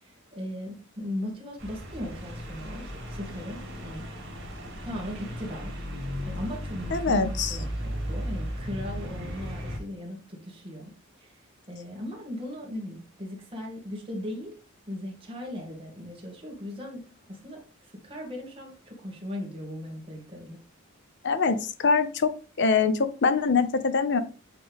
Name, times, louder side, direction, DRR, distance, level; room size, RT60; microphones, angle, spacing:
voice 1, 0.0-4.1 4.8-5.8 6.2-10.9 11.2-11.3 11.7-14.5 14.9-17.0 17.3-20.6, left 1 dB, 25° right, -1 dB, 1.9 m, -38 dB
sound 1, 1.6-9.8, equal, 55° right, 2.7 m, -36 dB
voice 2, 6.9-7.6 21.2-22.3 22.6-24.2, left 4 dB, 55° left, 10 dB, 0.6 m, -23 dB
8.7 x 3.3 x 3.5 m, 0.38 s
head